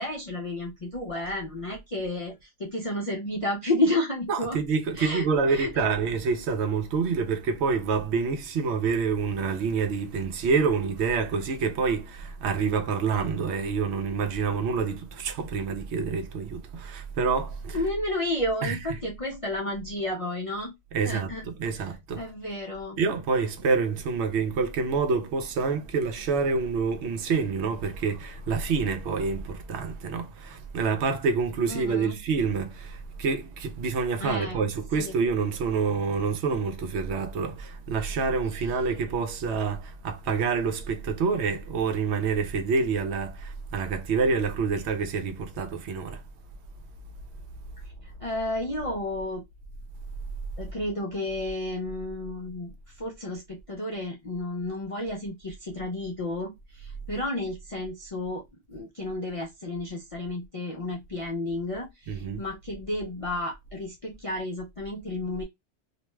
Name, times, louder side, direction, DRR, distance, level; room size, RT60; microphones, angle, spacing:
voice 1, 0.0-4.6 5.0-5.7 17.7-20.7 21.0-21.5 22.2-23.0 31.7-32.1 34.2-34.7 35.0-35.2 48.0-49.4 50.6-58.4 58.7-65.4, left 1 dB, 50° left, 0.4 m, -31 dB
voice 2, 4.3-17.9 18.6-19.0 20.9-22.3 23.0-46.2 62.1-62.4, right 5 dB, 70° right, 0.8 m, -27 dB
2.4 x 2.2 x 3.0 m
omnidirectional pair, 1.2 m